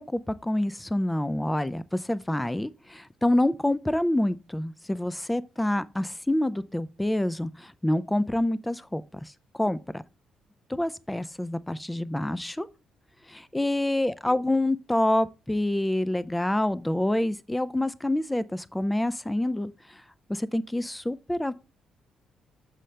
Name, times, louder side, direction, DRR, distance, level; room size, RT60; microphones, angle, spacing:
voice 1, 0.0-10.0 10.7-12.7 13.3-20.0 20.3-21.5, left 1 dB, 10° left, 0.4 m, -27 dB
6.4 x 5.5 x 3.2 m
cardioid pair, 90°, 0 cm